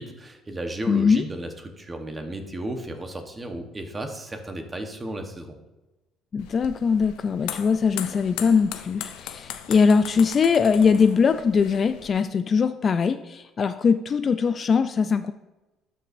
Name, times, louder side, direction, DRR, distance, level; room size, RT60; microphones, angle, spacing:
voice 1, 0.0-5.6, right 1 dB, 20° right, 5 dB, 1.1 m, -34 dB
voice 2, 0.9-1.2 6.3-15.3, left 5 dB, 35° left, 11 dB, 0.3 m, -21 dB
sound 1, 6.4-12.1, left 11 dB, 85° left, 0.6 m, -38 dB
12.0 x 5.3 x 2.6 m, 1.1 s
cardioid pair, 110°, 0 cm